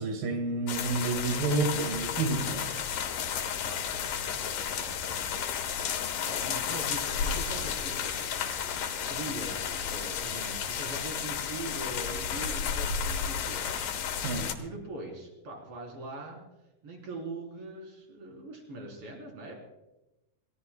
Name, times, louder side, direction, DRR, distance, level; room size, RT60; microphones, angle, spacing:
voice 1, 0.0-2.6 14.2-14.5, right 3 dB, 90° right, 4 dB, 3.6 m, -29 dB
sound 1, 0.7-14.6, left 7 dB, 75° left, 2.7 m, -32 dB
voice 2, 3.6-4.4 4.7-5.2 6.2-8.3 9.1-13.9 14.6-16.4 16.8-19.5, right 2 dB, 45° right, 0 dB, 4.5 m, -42 dB
28.0 x 16.5 x 2.2 m, 0.99 s
omnidirectional pair, 3.8 m